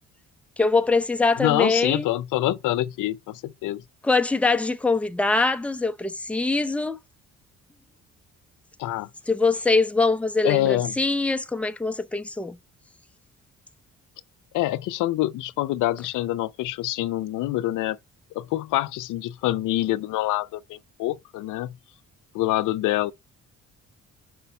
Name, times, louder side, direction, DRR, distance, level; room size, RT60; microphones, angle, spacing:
voice 1, 0.6-2.1 4.0-7.0 9.3-12.6, left 3 dB, 5° left, 0.6 m, -23 dB
voice 2, 1.4-3.8 8.8-9.1 10.4-10.9 14.5-18.0 18.3-21.7 22.3-23.1, left 15 dB, 85° left, 0.5 m, -26 dB
5.5 x 5.0 x 5.2 m
cardioid pair, 90°, 30 cm